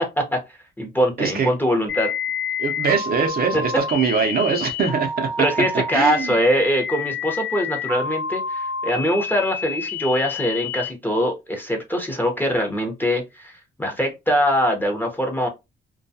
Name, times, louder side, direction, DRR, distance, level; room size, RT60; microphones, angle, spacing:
voice 1, 0.0-2.1 3.5-3.6 5.4-15.5, equal, 10° left, 0.8 m, -23 dB
voice 2, 1.2-1.5 2.6-5.5 5.7-6.4, right 5 dB, 50° right, 0.7 m, -22 dB
sound 1, 1.9-10.9, left 5 dB, 80° left, 0.7 m, -29 dB
2.3 x 2.2 x 2.7 m
cardioid pair, 90°, 20 cm